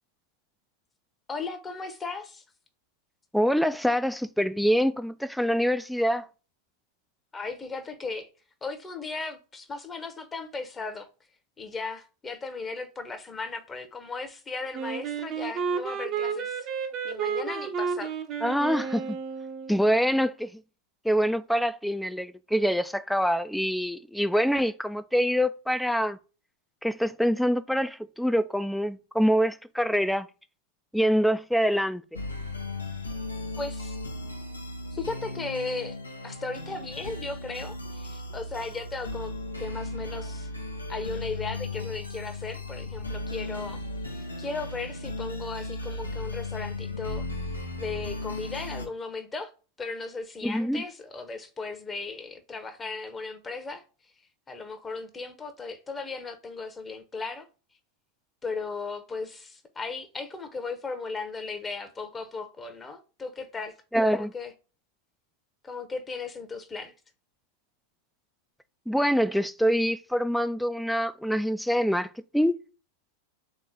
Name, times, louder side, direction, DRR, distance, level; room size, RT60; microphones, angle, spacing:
voice 1, 1.3-2.4 7.3-8.3 8.6-11.1 11.6-16.7 17.0-18.1 33.6-33.9 34.9-36.0 36.2-39.3 39.6-40.5 40.9-43.8 44.1-47.3 47.8-49.5 49.8-53.8 54.5-57.5 58.4-63.7 64.1-64.5 65.6-66.9, left 4 dB, 15° left, 0.8 m, -36 dB
voice 2, 3.3-6.3 18.4-19.2 19.7-20.5 21.0-26.2 26.8-30.3 30.9-32.0 50.4-50.8 63.9-64.3 68.9-72.6, equal, ahead, 0.3 m, -25 dB
Wind instrument woodwind instrument, 14.7-19.8, right 6 dB, 30° right, 0.6 m, -32 dB
sound 1, 32.1-48.9, left 2 dB, 80° left, 0.8 m, -36 dB
3.7 x 3.0 x 3.8 m
figure-of-eight pair, 90°, 0 cm